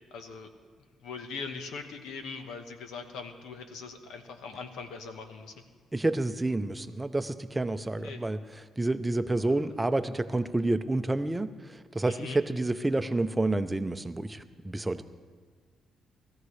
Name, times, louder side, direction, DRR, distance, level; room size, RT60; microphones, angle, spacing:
voice 1, 0.1-0.5 1.0-5.6 8.0-8.2 9.4-9.8 12.1-12.4, left 4 dB, 85° left, 6 dB, 1.2 m, -41 dB
voice 2, 5.9-8.4 8.8-15.0, right 2 dB, 15° right, 10 dB, 0.6 m, -29 dB
20.0 x 14.0 x 3.3 m, 1.5 s
cardioid pair, 90°, 0 cm